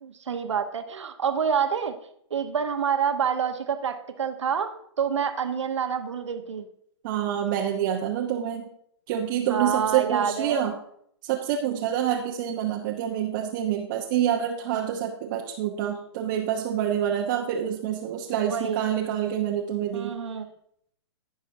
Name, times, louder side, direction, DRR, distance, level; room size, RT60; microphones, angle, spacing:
voice 1, 0.0-1.9 2.3-4.7 5.0-6.7 9.5-10.7 18.5-18.8 19.9-20.5, right 7 dB, 80° right, 6 dB, 1.2 m, -27 dB
voice 2, 7.0-8.7 9.1-10.7 11.2-20.2, right 10 dB, 45° right, 0 dB, 1.0 m, -27 dB
18.0 x 6.3 x 2.7 m, 0.70 s
hypercardioid pair, 130°, 15 cm